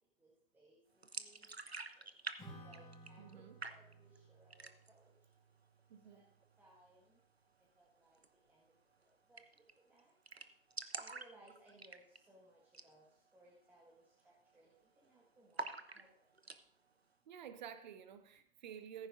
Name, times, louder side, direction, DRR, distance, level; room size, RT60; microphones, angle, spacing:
voice 1, 0.2-0.8 1.2-2.1 2.6-5.1 6.0-6.2 6.6-7.2 7.8-8.2 8.5-8.7 9.0-9.4 9.7-10.1 11.0-15.7 15.9-16.3, right 1 dB, 5° right, -4 dB, 1.6 m, -65 dB
sound 1, 1.0-2.4 2.6-3.3 3.6-4.2 4.5-5.0 5.4-5.5 5.8-6.4 8.1-8.3 8.6-8.7 8.9-9.0 9.4-9.7 10.0-10.1 10.3-12.3 12.7-12.9 13.3-13.4 13.9-14.2 14.5-15.1 15.5-16.6, right 3 dB, 90° right, 0.9 m, -47 dB
Acoustic guitar / Strum, 2.4-7.2, right 2 dB, 10° left, 5.4 m, -59 dB
voice 2, 3.2-3.6 5.9-6.2 17.2-19.1, right 8 dB, 45° right, 9 dB, 1.4 m, -51 dB
15.0 x 14.5 x 2.6 m, 0.64 s
figure-of-eight pair, 115°, 30 cm